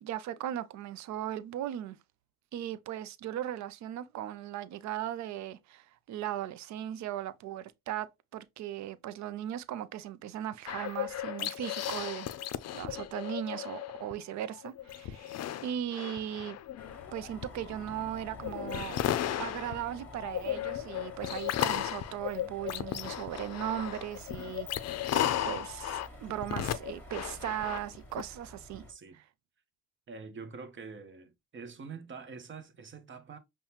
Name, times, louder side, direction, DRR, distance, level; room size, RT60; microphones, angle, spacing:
voice 1, 0.0-2.0 2.5-12.3 12.7-15.4 15.6-16.6 17.1-19.0 19.4-24.7 25.5-28.8 29.1-29.2, right 11 dB, 65° right, 0.5 m, -38 dB
sound 1, 10.7-14.1 14.5-28.2, left 11 dB, 60° left, 0.4 m, -35 dB
sound 2, 16.8-28.9, left 1 dB, 5° left, 1.2 m, -51 dB
voice 2, 28.7-29.2 30.1-33.4, right 5 dB, 40° right, 0.8 m, -45 dB
5.5 x 2.2 x 2.8 m
cardioid pair, 90°, 30 cm